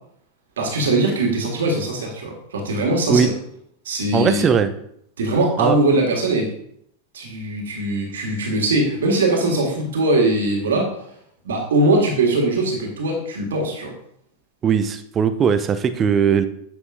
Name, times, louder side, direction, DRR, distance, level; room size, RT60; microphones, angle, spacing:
voice 1, 0.6-3.3 3.8-4.5 5.2-6.5 7.1-10.9 11.4-13.9, right 2 dB, 65° right, 0 dB, 1.8 m, -21 dB
voice 2, 4.1-4.7 5.6-5.8 14.6-16.5, right 7 dB, 25° right, 11 dB, 0.5 m, -18 dB
9.6 x 6.2 x 2.5 m, 0.70 s
figure-of-eight pair, 90°, 0 cm